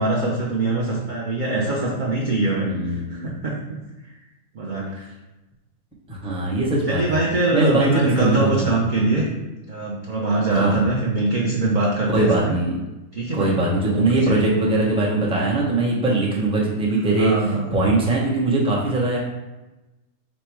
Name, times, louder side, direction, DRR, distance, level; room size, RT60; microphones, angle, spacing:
voice 1, 0.0-3.8 4.5-5.0 6.9-9.3 9.7-12.5 13.1-13.5 13.8-14.5 17.2-17.8, right 2 dB, 50° right, -3 dB, 0.6 m, -23 dB
voice 2, 2.7-3.3 6.1-7.2 7.5-7.9 8.2-8.7 10.5-10.8 12.1-12.8 13.3-19.2, right 2 dB, 5° right, -4 dB, 0.6 m, -21 dB
5.2 x 2.2 x 4.5 m, 1.1 s
omnidirectional pair, 1.5 m